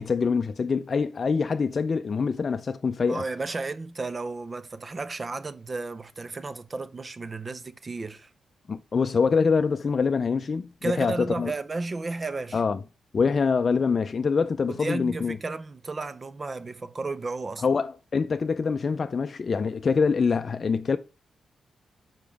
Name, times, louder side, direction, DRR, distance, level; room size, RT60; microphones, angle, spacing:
voice 1, 0.0-3.2 8.7-11.5 12.5-12.8 13.1-15.4 17.6-21.0, left 5 dB, 50° left, 0.4 m, -25 dB
voice 2, 3.0-8.3 10.8-12.6 14.7-17.6, right 3 dB, 40° right, 0.6 m, -33 dB
5.9 x 5.0 x 3.4 m
supercardioid pair, 50°, 0 cm